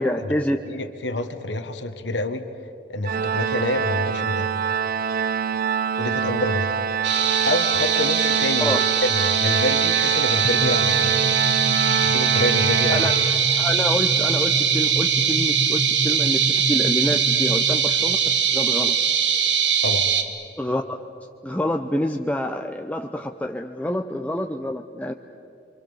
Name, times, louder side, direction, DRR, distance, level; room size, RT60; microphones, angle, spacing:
voice 1, 0.0-0.6 8.6-8.8 12.9-13.1 13.6-18.2 18.5-19.0 20.6-21.0 21.4-25.1, left 1 dB, 10° left, 3 dB, 0.7 m, -27 dB
voice 2, 0.7-2.5 2.9-4.5 6.0-6.8 7.5-11.2 12.0-13.1 19.8-20.1, left 2 dB, 80° left, 8 dB, 1.6 m, -27 dB
Organ, 3.0-13.8, right 7 dB, 55° right, 0.6 m, -25 dB
sound 1, 7.0-20.2, right 7 dB, 90° right, 2.0 m, -21 dB
sound 2, 10.4-18.0, equal, 40° left, 1.9 m, -30 dB
28.5 x 24.0 x 7.1 m, 2.7 s
head